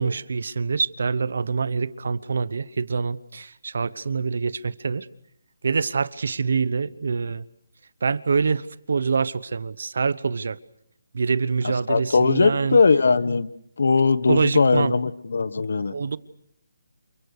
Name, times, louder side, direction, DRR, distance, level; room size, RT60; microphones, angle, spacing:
voice 1, 0.0-5.1 5.6-7.4 8.0-10.6 11.1-12.8 14.3-14.9 15.9-16.2, right 5 dB, 55° right, 18 dB, 1.0 m, -25 dB
voice 2, 11.6-13.5 13.8-15.9, left 4 dB, 60° left, 15 dB, 1.3 m, -20 dB
28.5 x 27.0 x 6.6 m, 0.72 s
hypercardioid pair, 175°, 0 cm